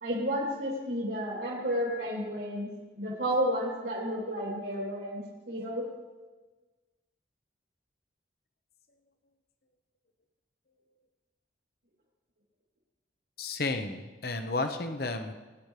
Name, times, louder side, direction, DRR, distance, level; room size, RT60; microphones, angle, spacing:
voice 1, 0.0-2.7 2.9-5.2 5.5-5.8, equal, 65° right, -6 dB, 3.3 m, -31 dB
voice 2, 13.4-15.3, left 3 dB, 55° left, 6 dB, 0.9 m, -32 dB
22.0 x 10.5 x 3.3 m, 1.3 s
head